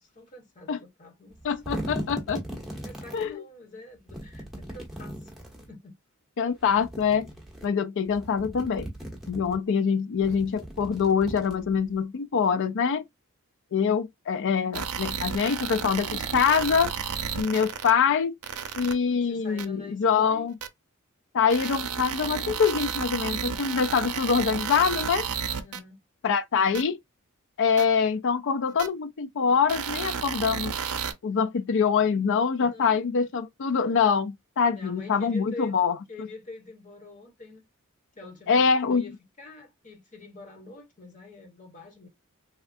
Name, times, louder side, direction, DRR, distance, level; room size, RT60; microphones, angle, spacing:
voice 1, 0.0-1.4 1.6-1.9 2.8-5.3 5.7-5.9 19.2-20.5 25.6-26.0 32.6-33.3 34.7-37.6 38.2-42.1, left 2 dB, 35° left, 1.2 m, -45 dB
sound 1, 1.3-3.3 4.1-5.7 6.6-7.7 8.0-9.6 10.1-11.9, equal, ahead, 1.1 m, -38 dB
voice 2, 1.4-2.4 3.1-3.4 6.4-7.3 7.6-8.9 9.3-13.0 13.7-16.9 17.4-18.3 18.8-20.5 21.3-25.2 26.2-27.0 27.6-30.7 31.2-36.3 38.5-39.1, left 6 dB, 60° left, 0.4 m, -24 dB
sound 2, 14.7-17.9 18.4-18.9 19.6-19.7 20.6-20.7 21.5-25.8 26.7-26.8 27.8-27.9 28.8-28.9 29.7-31.1, right 7 dB, 80° right, 0.6 m, -32 dB
3.5 x 2.3 x 2.5 m
head